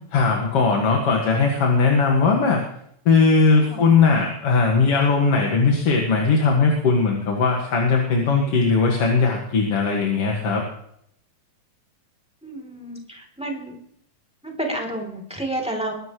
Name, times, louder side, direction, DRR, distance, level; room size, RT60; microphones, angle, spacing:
voice 1, 0.1-2.6 3.1-10.6, left 4 dB, 55° left, 0 dB, 2.7 m, -19 dB
voice 2, 12.4-13.8 14.4-15.9, right 1 dB, ahead, 1 dB, 2.9 m, -30 dB
22.0 x 11.5 x 3.2 m, 0.71 s
omnidirectional pair, 3.3 m